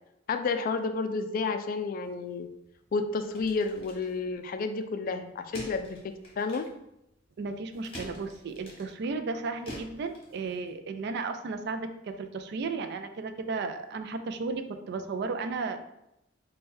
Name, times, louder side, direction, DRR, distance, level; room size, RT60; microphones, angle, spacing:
voice 1, 0.3-2.5 2.9-6.6, left 4 dB, 45° left, 8 dB, 0.3 m, -31 dB
sound 1, 2.0-10.8, left 1 dB, 30° left, 1.2 m, -48 dB
voice 2, 7.4-15.8, right 4 dB, 60° right, 8 dB, 0.3 m, -34 dB
3.2 x 2.2 x 4.3 m, 0.84 s
head